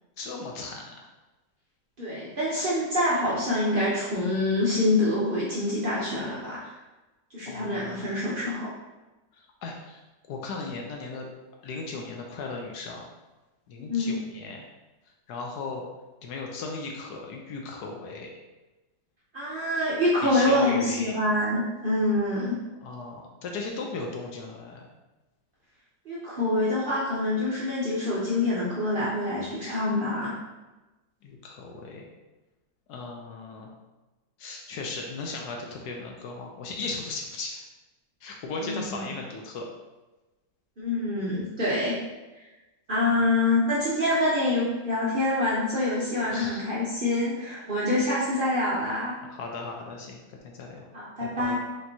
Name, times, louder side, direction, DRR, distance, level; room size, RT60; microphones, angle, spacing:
voice 1, 0.2-0.9 7.5-8.1 9.6-10.0 10.3-11.3 11.6-13.1 13.7-14.7 15.3-15.8 16.2-18.3 20.2-21.1 22.8-24.8 31.2-32.1 32.9-33.7 34.4-37.6 38.2-39.7 43.2-43.3 46.3-46.7 49.2-50.8 51.2-51.6, left 3 dB, 70° left, 0 dB, 1.1 m, -37 dB
voice 2, 2.0-6.7 7.3-8.7 13.9-14.2 19.3-22.6 26.1-30.3 38.6-39.0 40.8-42.0 42.9-49.2 50.9-51.6, left 1 dB, 65° right, -7 dB, 0.5 m, -26 dB
5.2 x 2.9 x 2.7 m, 1.1 s
omnidirectional pair, 2.0 m